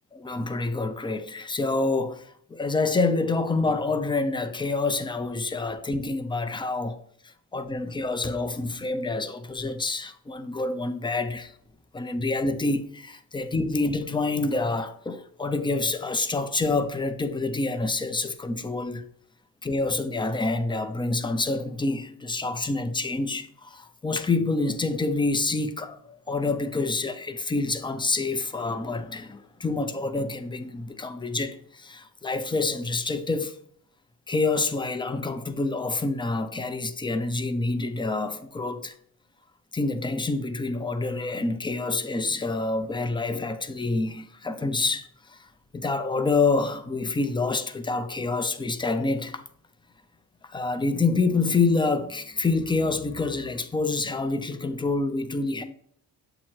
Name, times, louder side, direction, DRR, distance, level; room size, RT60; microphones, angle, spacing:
voice 1, 0.1-7.0 7.5-11.5 11.9-19.0 19.6-33.6 34.3-38.9 39.7-45.4 45.7-49.4 50.5-55.6, left 3 dB, 15° left, 0.5 m, -27 dB
7.5 x 3.0 x 4.4 m
cardioid pair, 95°, 37 cm